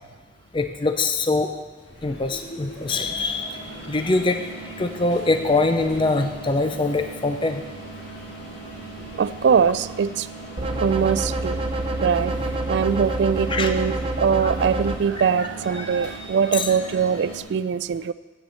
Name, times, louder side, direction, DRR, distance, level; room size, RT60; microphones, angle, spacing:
voice 1, 0.5-1.5 2.0-3.6 3.9-4.4 4.8-7.6 13.5-13.7 14.4-14.5 15.4-15.5 16.5-16.7, left 3 dB, 25° left, 7 dB, 0.5 m, -23 dB
sound 1, 1.7-17.4, right 2 dB, 60° left, 2.3 m, -39 dB
voice 2, 9.2-10.3 10.8-11.6 12.0-12.3 12.7-18.1, right 6 dB, 60° right, 15 dB, 0.3 m, -22 dB
sound 2, 10.6-15.0, right 2 dB, 30° right, 0.6 m, -27 dB
8.6 x 7.0 x 7.7 m, 1.3 s
head